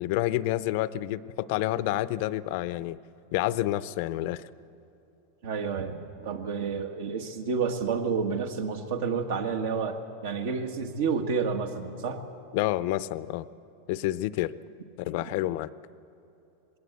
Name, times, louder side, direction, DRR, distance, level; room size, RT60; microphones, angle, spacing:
voice 1, 0.0-3.0 3.3-4.4 12.5-13.5 13.9-14.5 15.0-15.7, left 15 dB, 55° left, 16 dB, 0.5 m, -28 dB
voice 2, 5.4-12.2, right 5 dB, 70° right, 6 dB, 1.8 m, -30 dB
20.5 x 18.0 x 8.2 m, 2.8 s
supercardioid pair, 155°, 0 cm